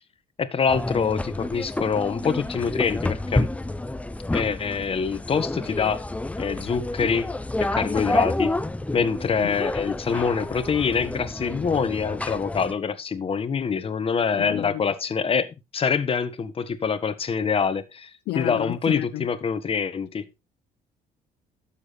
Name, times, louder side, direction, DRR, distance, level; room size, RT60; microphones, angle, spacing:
voice 1, 0.4-3.5 4.3-6.0 6.4-7.3 7.6-8.5 8.9-18.1 18.3-20.3, left 6 dB, 35° left, 1.5 m, -25 dB
sound 1, 0.7-12.7, left 2 dB, 10° left, 0.7 m, -29 dB
voice 2, 14.4-14.8 18.3-19.3, left 15 dB, 80° left, 0.7 m, -31 dB
12.0 x 7.3 x 4.2 m
cardioid pair, 110°, 17 cm